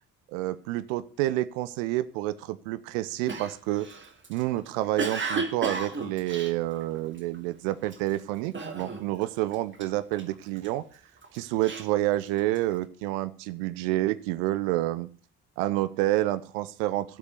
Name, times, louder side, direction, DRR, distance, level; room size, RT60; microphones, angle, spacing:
voice 1, 0.3-3.9 4.3-10.8 11.3-15.1 15.6-17.2, right 16 dB, 65° right, 14 dB, 1.0 m, -29 dB
Cough, 3.3-7.4 7.8-8.1 8.5-9.3 9.5-10.7 11.2-12.7, right 4 dB, 30° right, 2.8 m, -34 dB
15.5 x 8.2 x 6.7 m, 0.39 s
figure-of-eight pair, 45°, 41 cm